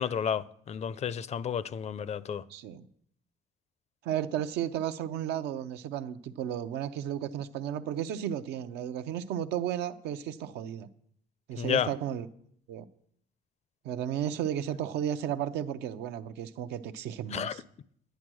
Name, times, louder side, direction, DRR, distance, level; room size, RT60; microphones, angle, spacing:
voice 1, 0.0-2.4 11.6-11.9 17.3-17.6, left 8 dB, 40° left, 0.5 m, -31 dB
voice 2, 2.5-2.9 4.0-10.9 11.5-12.3 12.7-12.8 13.8-17.6, right 10 dB, 85° right, 0.7 m, -33 dB
10.5 x 9.9 x 6.2 m
cardioid pair, 110°, 17 cm